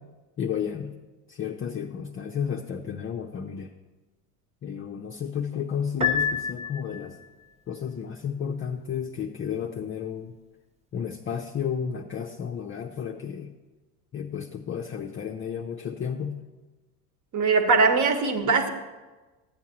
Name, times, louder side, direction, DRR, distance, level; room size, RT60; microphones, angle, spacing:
voice 1, 0.4-0.9 1.3-3.7 4.6-7.2 7.7-10.3 10.9-13.5 14.1-16.4, left 7 dB, 25° left, 2 dB, 0.6 m, -32 dB
Piano, 6.0-7.3, left 6 dB, 15° right, 0.7 m, -27 dB
voice 2, 17.3-18.7, right 4 dB, 40° right, 7 dB, 1.2 m, -21 dB
13.0 x 8.2 x 2.9 m, 1.2 s
hypercardioid pair, 70°, 48 cm